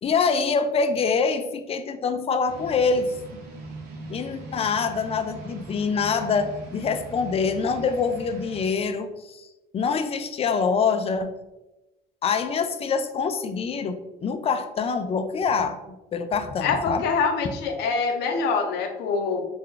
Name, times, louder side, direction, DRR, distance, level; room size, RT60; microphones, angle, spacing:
voice 1, 0.0-3.1 4.1-9.5 9.7-11.3 12.2-17.0, left 5 dB, 35° left, 8 dB, 0.4 m, -25 dB
sound 1, 2.5-8.7, right 2 dB, 80° right, 1.0 m, -41 dB
voice 2, 16.6-19.5, left 5 dB, 80° left, 4 dB, 0.7 m, -25 dB
3.9 x 2.3 x 3.2 m, 1.0 s
cardioid pair, 110°, 17 cm